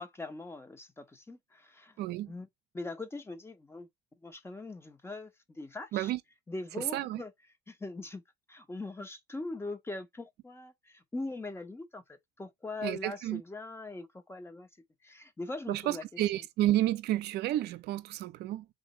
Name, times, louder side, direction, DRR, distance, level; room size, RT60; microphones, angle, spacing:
voice 1, 0.0-2.0 2.3-2.5 2.7-3.9 4.2-6.1 6.5-7.3 7.7-8.2 8.5-14.7 15.0-16.0, left 2 dB, 15° left, 0.8 m, -41 dB
voice 2, 2.0-2.3 5.9-6.2 6.8-7.2 12.8-13.4 15.7-18.7, right 14 dB, 75° right, 0.6 m, -31 dB
3.9 x 2.9 x 4.1 m
cardioid pair, 110°, 17 cm